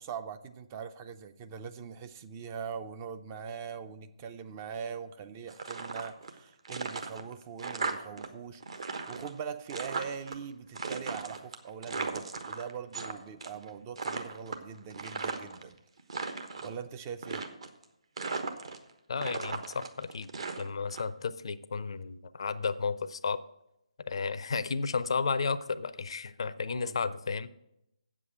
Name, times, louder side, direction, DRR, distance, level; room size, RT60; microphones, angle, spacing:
voice 1, 0.0-15.8 16.6-17.5 26.7-27.0, right 7 dB, 25° right, 10 dB, 0.5 m, -42 dB
sound 1, 5.5-6.4 6.6-8.3 8.5-10.3 10.7-13.1 13.4-13.7 13.9-15.6 16.0-16.7 17.2-17.8 18.2-18.9 19.2-21.0, right 4 dB, 55° right, 1.1 m, -37 dB
voice 2, 19.1-20.3 20.6-23.4 24.1-27.5, left 5 dB, 50° left, 15 dB, 0.5 m, -33 dB
7.9 x 7.5 x 7.7 m, 0.85 s
figure-of-eight pair, 145°, 4 cm